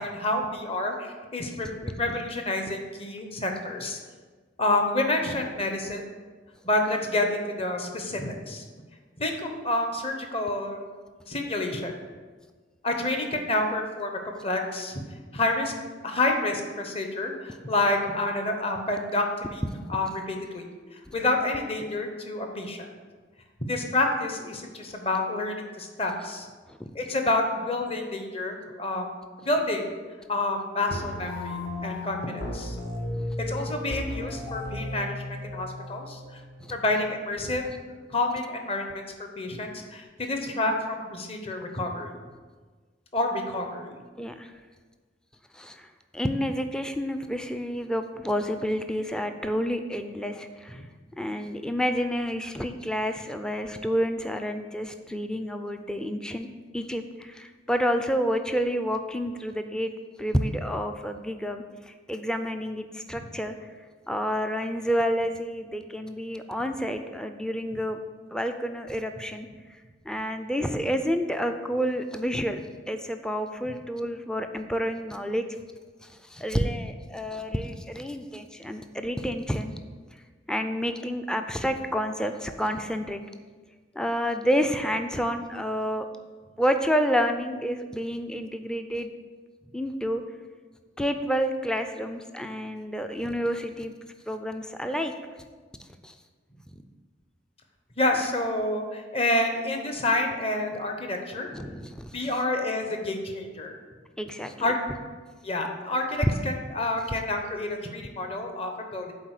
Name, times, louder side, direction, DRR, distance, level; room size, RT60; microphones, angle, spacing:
voice 1, 0.0-4.0 4.6-6.0 6.6-8.6 9.2-10.8 11.3-11.9 12.8-15.0 15.3-15.7 16.0-19.2 19.9-22.9 23.7-26.5 26.9-29.1 29.4-29.9 30.3-32.8 33.5-35.2 35.5-36.2 36.7-37.6 38.1-39.0 39.4-42.2 43.1-43.9 98.0-101.5 102.1-103.7 104.6-104.8 105.4-109.1, left 2 dB, 30° left, 3 dB, 0.9 m, -28 dB
voice 2, 1.5-2.0 21.1-21.2 26.7-26.8 36.6-36.7 37.4-37.5 44.2-44.5 45.5-50.8 51.2-56.5 56.7-59.9 60.2-63.5 64.1-68.0 68.3-69.8 70.1-72.6 72.9-75.4 76.0-79.8 80.5-83.2 83.9-86.1 86.6-89.1 89.7-90.2 91.0-93.9 94.3-95.1 96.0-96.1 101.5-102.2 104.2-104.7, equal, 5° left, 7 dB, 0.4 m, -29 dB
sound 1, 30.9-36.9, left 1 dB, 65° left, 1.5 m, -35 dB
8.6 x 3.9 x 6.5 m, 1.4 s
head